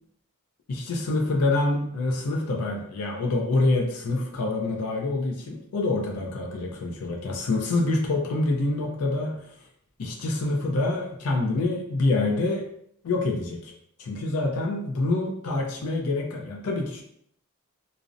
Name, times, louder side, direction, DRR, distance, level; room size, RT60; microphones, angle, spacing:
voice 1, 0.7-9.5 10.0-12.6 13.0-13.7 14.0-17.0, left 2 dB, 80° left, 0 dB, 0.4 m, -26 dB
2.5 x 2.0 x 2.4 m, 0.70 s
head